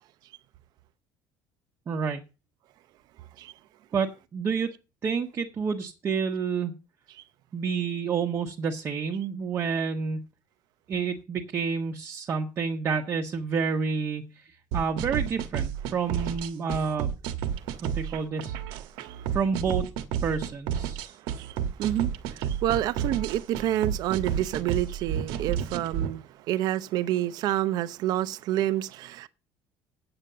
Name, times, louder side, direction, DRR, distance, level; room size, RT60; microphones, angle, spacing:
voice 1, 1.9-2.2 3.9-4.7 5.0-6.7 7.5-10.2 10.9-17.1 17.8-18.6 19.3-19.9 20.2-21.2, right 5 dB, 30° right, 1.1 m, -29 dB
sound 1, 14.7-26.1, right 9 dB, 85° right, 1.3 m, -31 dB
voice 2, 18.9-19.3 21.1-29.3, right 13 dB, 55° right, 0.7 m, -29 dB
8.9 x 7.6 x 6.8 m
cardioid pair, 155°, 8 cm